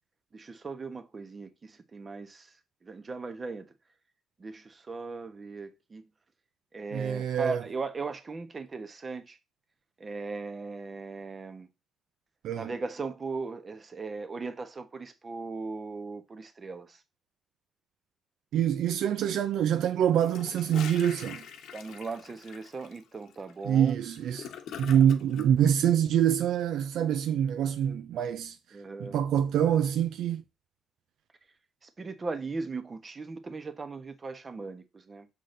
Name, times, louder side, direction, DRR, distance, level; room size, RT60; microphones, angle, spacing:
voice 1, 0.3-2.5 2.8-3.7 4.4-6.0 6.7-9.4 10.0-11.7 12.5-17.0 21.7-23.9 28.7-29.2 31.8-35.3, right 4 dB, 35° right, 1.1 m, -38 dB
voice 2, 6.9-7.6 12.4-12.7 18.5-21.4 23.6-24.5 24.8-28.6 29.0-30.4, right 9 dB, 75° right, 0.5 m, -25 dB
Gurgling / Toilet flush, 20.1-25.5, left 8 dB, 80° left, 1.0 m, -44 dB
6.7 x 4.0 x 3.8 m
cardioid pair, 90°, 0 cm